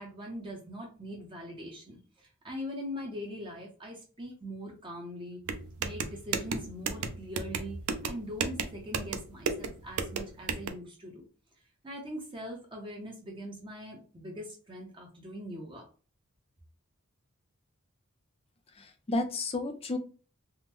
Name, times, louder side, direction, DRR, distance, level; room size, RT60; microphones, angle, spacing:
voice 1, 0.0-5.4 5.8-11.3 11.8-15.9, equal, 25° right, -1 dB, 0.6 m, -42 dB
sound 1, 5.5-10.7, right 5 dB, 80° right, 0.4 m, -34 dB
voice 2, 18.7-20.0, left 2 dB, 25° left, 6 dB, 0.4 m, -32 dB
3.5 x 2.0 x 3.0 m, 0.37 s
head